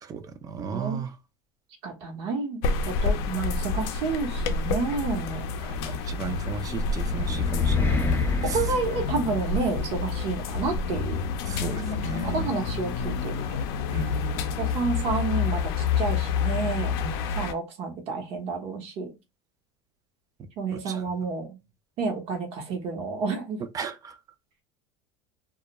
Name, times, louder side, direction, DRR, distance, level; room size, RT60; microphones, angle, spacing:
voice 1, 0.0-1.1 5.6-8.6 11.4-12.5 13.9-14.6 17.0-17.1 20.7-21.0 23.7-24.2, right 4 dB, 30° right, 0.5 m, -35 dB
voice 2, 0.7-1.0 1.8-5.5 8.4-11.3 11.6-12.0 12.2-13.6 14.6-16.9 17.4-19.1 20.6-21.6 22.0-23.6, right 4 dB, 50° right, 0.9 m, -30 dB
sound 1, 2.6-17.5, left 5 dB, 70° left, 0.5 m, -28 dB
sound 2, 6.4-9.8, left 3 dB, 15° left, 0.6 m, -28 dB
2.3 x 2.1 x 2.8 m
supercardioid pair, 105°, 13 cm